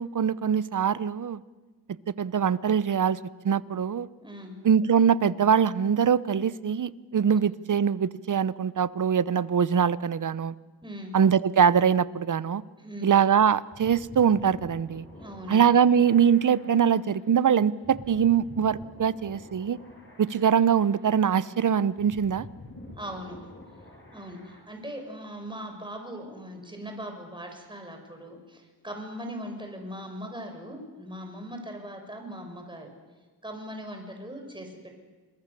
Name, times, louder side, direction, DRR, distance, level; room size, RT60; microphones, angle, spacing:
voice 1, 0.0-1.4 2.1-3.2 3.4-4.1 4.6-10.5 11.1-12.6 13.0-15.0 15.5-19.8 20.2-22.5, right 7 dB, 45° right, 18 dB, 0.9 m, -23 dB
voice 2, 4.2-4.6 10.8-11.1 12.8-13.1 15.2-15.6 23.0-23.5 24.1-32.9 33.4-35.0, equal, 10° right, 4 dB, 5.7 m, -40 dB
sound 1, 13.6-24.6, left 1 dB, 30° left, 7.2 m, -48 dB
28.0 x 22.5 x 6.8 m, 1.3 s
cardioid pair, 65°, 41 cm